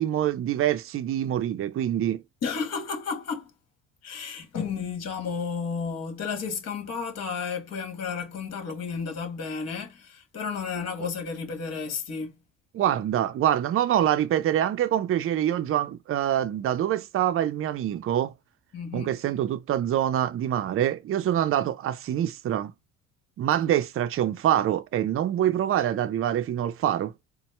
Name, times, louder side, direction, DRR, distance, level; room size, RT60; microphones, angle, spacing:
voice 1, 0.0-2.2 12.7-18.3 18.9-22.7 23.4-27.1, right 11 dB, 40° right, 0.5 m, -25 dB
voice 2, 2.4-3.5 4.0-12.4 18.7-19.1, left 5 dB, 50° left, 1.5 m, -32 dB
4.1 x 2.1 x 3.3 m
cardioid pair, 95°, 33 cm